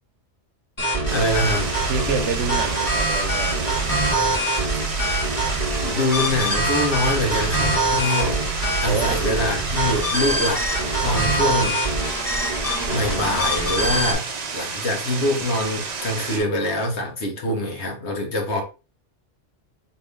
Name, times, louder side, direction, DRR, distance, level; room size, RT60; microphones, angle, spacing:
sound 1, 0.8-14.1, right 1 dB, 35° left, 1.5 m, -24 dB
voice 1, 1.1-1.7 5.8-8.4 8.8-10.6 11.0-11.8 12.9-18.6, left 1 dB, 75° left, 1.5 m, -24 dB
sound 2, 1.1-16.4, right 4 dB, 45° right, 0.7 m, -31 dB
voice 2, 1.9-3.8 8.9-9.4, right 5 dB, 85° right, 1.0 m, -28 dB
4.4 x 2.9 x 3.4 m
omnidirectional pair, 1.2 m